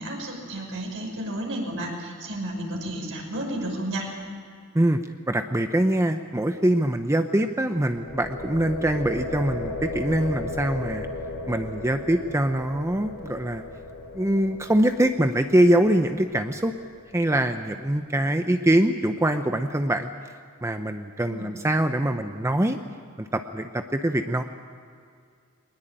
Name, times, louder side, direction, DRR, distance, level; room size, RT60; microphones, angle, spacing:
voice 1, 0.0-4.1 21.3-21.5, right 1 dB, 60° right, 0 dB, 5.7 m, -32 dB
voice 2, 5.3-11.1 11.5-13.6 14.1-16.7 17.1-20.1 20.6-22.8 23.2-24.4, right 1 dB, 15° right, 7 dB, 0.7 m, -23 dB
sound 1, 7.8-17.7, left 2 dB, 65° left, 5.8 m, -36 dB
21.5 x 20.5 x 8.9 m, 2.2 s
head